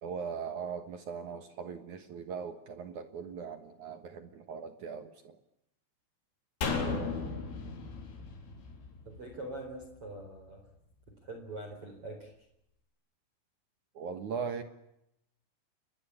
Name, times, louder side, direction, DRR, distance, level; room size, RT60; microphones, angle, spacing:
voice 1, 0.0-5.4 14.0-14.6, right 6 dB, 65° right, 8 dB, 1.9 m, -39 dB
sound 1, 6.6-9.9 10.2-10.3, left 4 dB, 75° left, 6.8 m, -36 dB
voice 2, 6.6-7.3 9.1-10.6 11.2-12.3, right 2 dB, 30° right, 3 dB, 4.8 m, -43 dB
29.0 x 22.0 x 8.7 m, 0.80 s
omnidirectional pair, 5.7 m